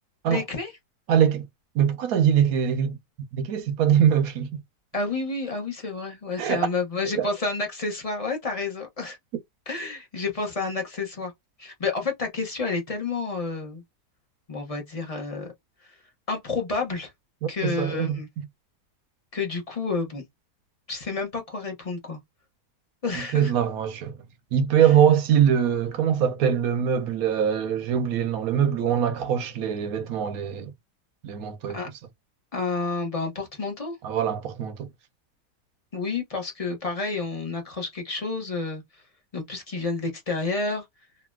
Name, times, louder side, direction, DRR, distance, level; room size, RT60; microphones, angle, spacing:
voice 1, 0.3-0.7 4.9-9.2 9.7-11.3 11.6-13.8 14.5-15.5 16.3-17.1 17.5-18.3 19.3-20.2 20.9-22.2 23.0-23.5 31.7-31.9 32.5-33.9 35.9-38.8 39.3-40.8, left 3 dB, 30° left, 0.8 m, -30 dB
voice 2, 1.1-1.5 1.7-3.0 3.3-4.6 6.4-6.6 7.0-7.3 17.4-18.2 23.1-24.2 24.5-30.7 31.2-31.8 34.0-34.9, right 8 dB, 65° right, 1.0 m, -23 dB
3.0 x 2.8 x 2.2 m
omnidirectional pair, 1.8 m